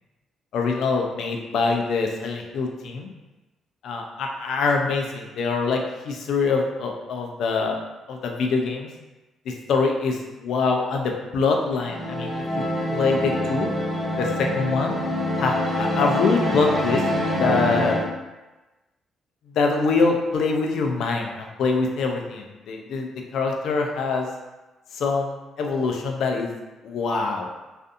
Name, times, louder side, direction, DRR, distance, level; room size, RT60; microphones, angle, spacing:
voice 1, 0.5-3.1 3.8-7.8 8.1-8.9 9.5-13.7 14.2-15.0 15.4-15.5 15.8-17.0 17.4-18.0 19.5-24.3 24.9-26.5 26.8-27.5, left 4 dB, 75° left, 2 dB, 0.4 m, -24 dB
sound 1, 11.7-18.1, left 1 dB, 25° right, 1.3 m, -25 dB
2.5 x 2.5 x 2.4 m, 1.1 s
cardioid pair, 90°, 0 cm